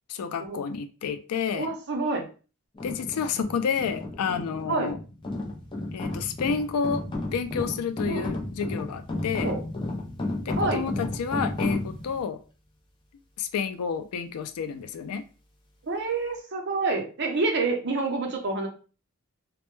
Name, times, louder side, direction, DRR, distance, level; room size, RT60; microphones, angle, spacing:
voice 1, 0.1-1.7 2.8-5.0 5.9-7.0 7.3-9.5 10.4-12.4 13.4-15.2, left 6 dB, 85° left, 9 dB, 0.4 m, -30 dB
voice 2, 1.5-2.3 4.7-5.0 8.1-8.3 9.4-9.6 10.6-10.8 15.8-18.7, right 3 dB, 50° right, 2 dB, 0.6 m, -28 dB
sound 1, 2.7-12.2, left 2 dB, 20° left, 0.4 m, -33 dB
2.1 x 2.1 x 3.0 m, 0.35 s
head